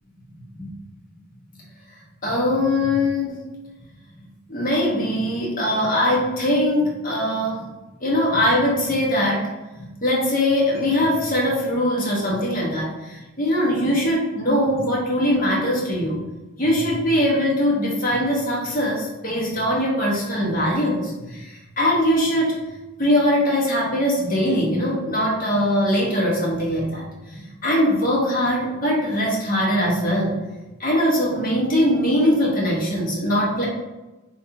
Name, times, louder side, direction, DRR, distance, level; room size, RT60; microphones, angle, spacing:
voice 1, 2.2-3.4 4.5-7.7 8.0-9.5 9.7-16.2 16.6-22.5 23.0-30.4 30.8-33.7, left 1 dB, 45° left, -3 dB, 1.2 m, -21 dB
5.4 x 3.2 x 2.8 m, 1.1 s
head